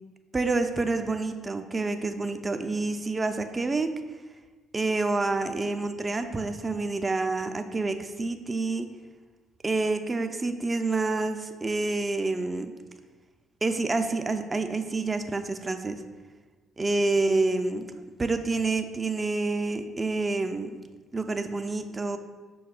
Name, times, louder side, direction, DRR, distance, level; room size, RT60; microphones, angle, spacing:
voice 1, 0.3-3.9 4.7-8.9 9.6-12.7 13.6-16.0 16.8-17.9 18.2-20.8 21.1-22.2, right 3 dB, 25° right, 8 dB, 0.4 m, -28 dB
5.8 x 2.3 x 3.6 m, 1.3 s
hypercardioid pair, 50°, 0 cm